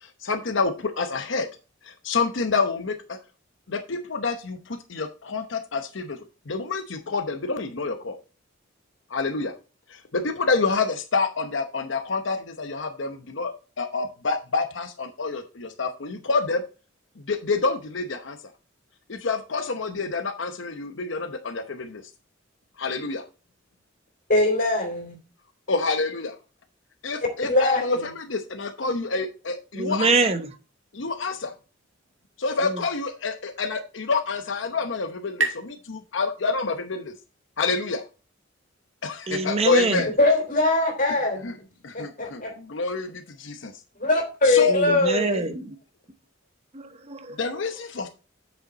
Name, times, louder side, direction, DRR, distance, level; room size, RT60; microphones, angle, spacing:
voice 1, 0.0-1.5 1.8-3.2 3.7-6.2 6.5-8.1 9.1-9.5 9.9-13.5 13.8-16.6 17.2-18.4 19.1-22.0 22.8-23.2 25.7-26.3 27.0-30.1 30.9-31.5 32.4-37.1 37.6-38.0 39.0-40.1 41.4-41.5 41.8-43.7 44.4-44.8 47.4-48.1, left 4 dB, 70° left, 0.8 m, -27 dB
voice 2, 24.3-25.2 27.4-28.1 40.2-41.6 41.9-42.5 44.0-45.4, left 2 dB, 45° left, 3.3 m, -22 dB
voice 3, 29.7-30.6 32.6-32.8 39.3-40.1 44.7-45.8 46.7-47.6, right 3 dB, 30° right, 0.7 m, -25 dB
sound 1, 33.9-37.3, right 3 dB, 65° right, 1.8 m, -34 dB
8.1 x 6.6 x 4.0 m
head